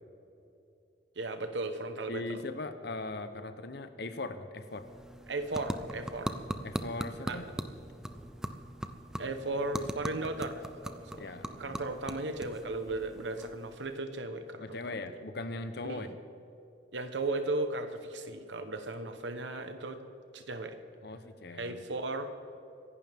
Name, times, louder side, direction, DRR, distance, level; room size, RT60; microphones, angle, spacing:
voice 1, 1.2-2.2 5.3-6.4 7.2-7.4 9.2-11.3 11.6-14.8 15.8-16.1 16.9-20.0 20.3-20.8 21.6-22.3, right 2 dB, 85° right, 8 dB, 1.1 m, -36 dB
voice 2, 2.1-4.9 6.6-7.5 11.2-11.9 14.6-16.2 21.0-21.8, left 2 dB, 65° left, 10 dB, 0.9 m, -39 dB
sound 1, 4.6-14.0, equal, 5° right, 0.6 m, -41 dB
25.0 x 11.0 x 3.6 m, 2.8 s
head